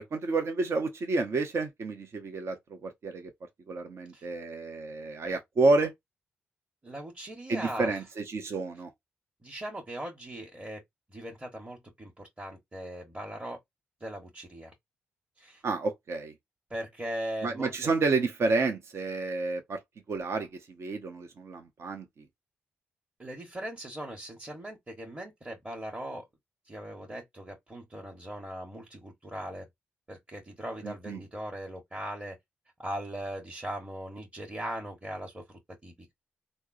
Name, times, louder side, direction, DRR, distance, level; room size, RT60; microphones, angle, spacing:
voice 1, 0.0-2.6 2.8-3.3 3.7-5.9 7.5-8.9 15.6-16.3 17.4-19.8 20.1-20.5 20.8-22.0 30.8-31.2, right 3 dB, 55° right, 0.7 m, -29 dB
voice 2, 6.8-8.0 9.4-10.8 11.1-13.6 14.0-14.7 15.4-15.6 16.7-17.7 23.2-26.2 26.6-29.7 30.1-32.4 32.8-36.1, right 1 dB, 25° right, 1.2 m, -39 dB
3.4 x 2.0 x 2.5 m
hypercardioid pair, 40°, 6 cm